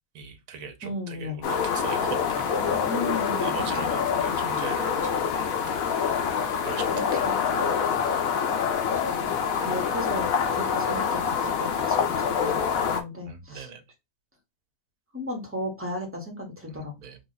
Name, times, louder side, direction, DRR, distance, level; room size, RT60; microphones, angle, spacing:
voice 1, 0.1-2.9 3.4-5.8 6.3-7.3 7.7-7.8 13.2-13.8 16.7-17.2, right 6 dB, 80° right, 1.2 m, -40 dB
voice 2, 0.8-1.4 2.8-3.9 6.9-7.4 9.2-9.3 9.6-13.7 15.1-16.9, left 1 dB, 10° right, 0.9 m, -35 dB
sound 1, 1.4-13.0, left 7 dB, 85° left, 1.1 m, -26 dB
3.4 x 2.4 x 3.9 m
omnidirectional pair, 1.4 m